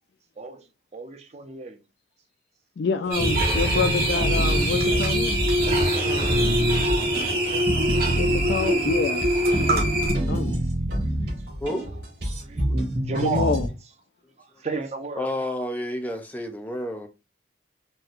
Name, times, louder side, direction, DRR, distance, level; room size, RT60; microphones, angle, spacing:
voice 1, 0.9-1.8 3.1-3.7 5.9-6.4 7.5-7.9 11.0-11.6 12.3-12.8 13.1-13.6 14.4-15.3, right 4 dB, 40° right, 0.5 m, -34 dB
voice 2, 2.8-5.4 6.0-6.7 8.1-9.3 9.7-10.5 13.2-13.7, left 4 dB, 70° left, 0.4 m, -28 dB
sound 1, 3.1-10.1, equal, 55° right, 1.2 m, -24 dB
sound 2, 3.2-13.7, right 1 dB, 75° right, 2.0 m, -27 dB
voice 3, 15.2-17.1, left 1 dB, 10° left, 0.5 m, -30 dB
4.2 x 2.2 x 2.5 m
head